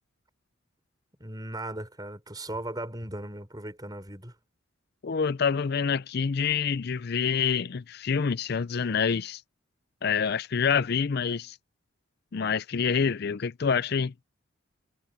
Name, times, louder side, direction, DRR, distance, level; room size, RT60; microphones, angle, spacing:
voice 1, 1.2-4.3, right 1 dB, 20° right, 4.9 m, -37 dB
voice 2, 5.0-9.4 10.0-11.6 12.3-14.1, left 6 dB, 50° left, 0.5 m, -27 dB
head